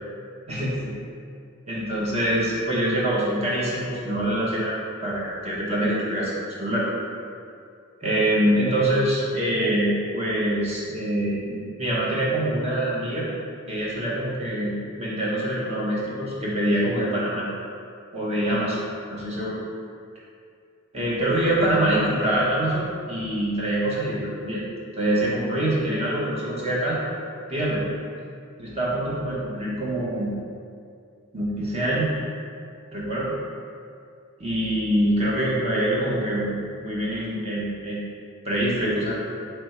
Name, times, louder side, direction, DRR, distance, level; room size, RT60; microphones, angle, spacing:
voice 1, 0.5-0.9 1.7-4.7 5.0-6.9 8.0-13.3 13.7-17.4 18.1-18.8 19.1-19.6 20.9-24.6 25.0-27.0 27.5-27.8 28.6-30.3 31.3-32.2 32.9-33.3 34.4-38.0 38.4-39.1, right 1 dB, 30° right, -6 dB, 0.9 m, -25 dB
3.4 x 3.3 x 4.2 m, 2.4 s
head